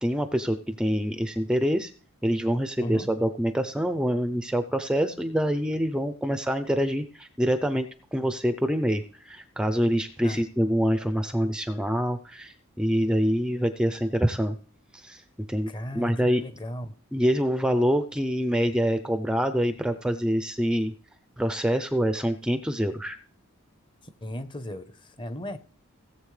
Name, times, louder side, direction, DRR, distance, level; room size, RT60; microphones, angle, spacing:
voice 1, 0.0-1.9 2.2-14.5 14.9-15.7 15.9-16.4 17.1-20.9 21.4-23.2, equal, 5° right, 0.5 m, -26 dB
voice 2, 15.7-16.9 24.2-25.6, equal, 25° left, 0.8 m, -36 dB
17.5 x 7.6 x 3.3 m
head